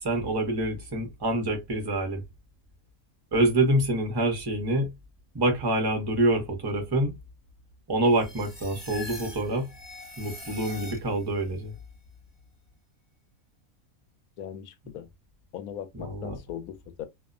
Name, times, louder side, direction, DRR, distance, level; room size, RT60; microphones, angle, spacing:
voice 1, 0.0-2.2 3.3-4.9 5.3-7.2 7.9-9.7 10.2-11.7 15.9-16.4, right 1 dB, 20° right, 0.7 m, -26 dB
sound 1, 8.0-11.4, left 2 dB, 30° left, 0.4 m, -43 dB
voice 2, 14.4-15.1 15.5-17.1, left 10 dB, 80° left, 1.0 m, -39 dB
2.6 x 2.1 x 2.4 m
omnidirectional pair, 1.5 m